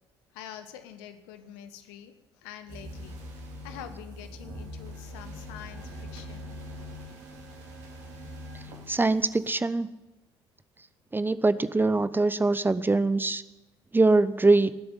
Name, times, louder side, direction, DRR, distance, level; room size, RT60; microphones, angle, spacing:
voice 1, 0.3-2.2 2.4-3.2 3.6-6.5, left 10 dB, 65° left, 10 dB, 1.2 m, -45 dB
sound 1, 2.7-9.5, equal, 55° right, 3.1 m, -42 dB
voice 2, 8.9-9.9 11.1-13.4 13.9-14.7, right 3 dB, 15° right, 15 dB, 0.7 m, -23 dB
18.0 x 8.0 x 9.2 m, 1.0 s
figure-of-eight pair, 50°, 14 cm